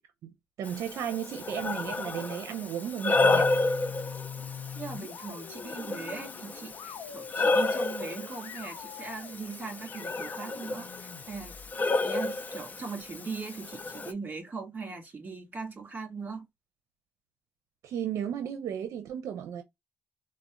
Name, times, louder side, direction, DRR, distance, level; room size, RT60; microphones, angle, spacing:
Breathing, 0.6-14.1, left 3 dB, 35° left, 0.4 m, -31 dB
voice 1, 0.6-3.5 17.8-19.6, right 9 dB, 75° right, 0.5 m, -34 dB
sound 1, 3.1-11.7, left 7 dB, 90° left, 0.5 m, -43 dB
voice 2, 4.7-11.5 12.0-16.5, right 4 dB, 35° right, 2.0 m, -40 dB
4.0 x 2.0 x 2.4 m
cardioid pair, 95°, 5 cm